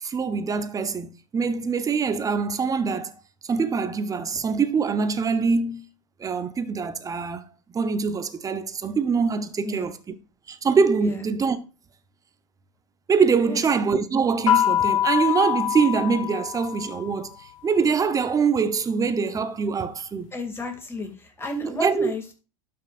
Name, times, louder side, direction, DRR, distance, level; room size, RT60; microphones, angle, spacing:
voice 1, 0.0-3.1 3.5-5.9 6.2-7.4 7.7-10.0 10.5-11.6 13.1-20.3 21.6-22.1, right 5 dB, 20° right, 0.9 m, -24 dB
sound 1, 14.5-17.2, left 11 dB, 70° left, 1.5 m, -24 dB
voice 2, 20.3-22.3, left 2 dB, 15° left, 2.5 m, -33 dB
12.0 x 5.7 x 2.5 m
hypercardioid pair, 100°, 17 cm